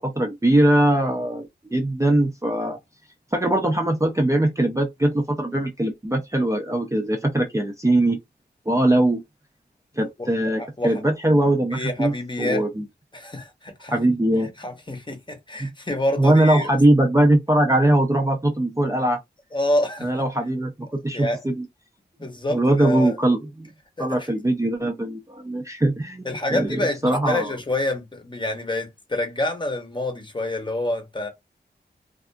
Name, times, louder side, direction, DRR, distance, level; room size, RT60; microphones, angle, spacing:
voice 1, 0.0-2.8 3.3-8.2 8.7-9.2 10.0-12.9 13.9-14.5 15.6-15.7 16.2-19.2 20.0-21.7 22.5-23.7 24.0-27.5, right 1 dB, 15° right, 0.5 m, -21 dB
voice 2, 10.6-10.9 11.7-12.6 13.1-13.9 14.6-16.7 19.5-20.2 21.1-21.4 22.2-23.2 24.0-24.3 26.2-31.3, left 1 dB, 25° left, 0.8 m, -27 dB
2.6 x 2.4 x 2.2 m
wide cardioid pair, 75°, 18 cm